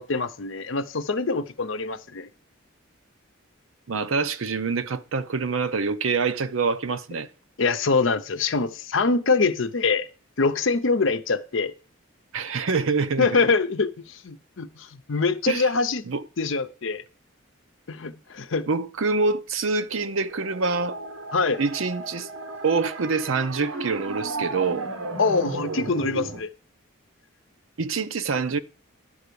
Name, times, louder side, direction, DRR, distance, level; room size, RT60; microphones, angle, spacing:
voice 1, 0.0-2.3 7.6-10.1 10.4-11.7 13.2-16.0 16.4-17.0 17.9-18.7 21.3-21.6 25.2-26.5, left 4 dB, 65° left, 0.7 m, -24 dB
voice 2, 3.9-7.3 12.3-13.3 15.5-15.7 16.1-16.2 18.7-21.0 21.6-22.3 22.6-24.9 27.8-28.6, right 4 dB, 70° right, 0.6 m, -25 dB
sound 1, 19.9-26.4, right 2 dB, 85° right, 1.4 m, -34 dB
11.0 x 4.7 x 6.8 m
head